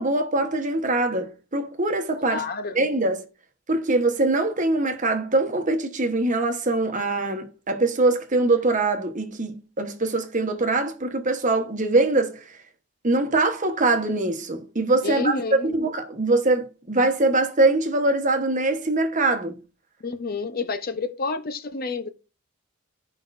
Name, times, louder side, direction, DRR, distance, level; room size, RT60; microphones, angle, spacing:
voice 1, 0.0-2.4 2.7-3.2 3.7-12.6 13.0-15.3 15.6-19.6, right 2 dB, 35° right, 1.1 m, -23 dB
voice 2, 2.3-2.8 15.0-15.7 20.0-22.1, left 3 dB, 45° left, 0.7 m, -29 dB
16.0 x 5.3 x 2.5 m
head